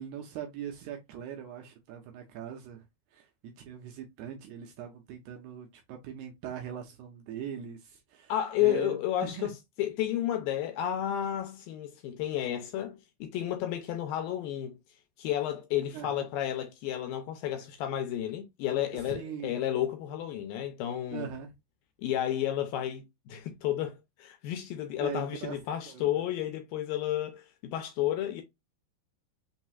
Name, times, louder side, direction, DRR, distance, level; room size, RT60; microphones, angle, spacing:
voice 1, 0.0-2.8 3.1-8.3 8.6-9.5 15.9-16.3 18.9-19.6 21.1-21.5 25.0-25.6 25.9-26.0, right 9 dB, 80° right, 2.8 m, -41 dB
voice 2, 8.3-9.5 9.8-14.8 15.2-21.3 22.0-28.4, left 11 dB, 80° left, 2.1 m, -32 dB
6.5 x 3.0 x 2.3 m
omnidirectional pair, 4.8 m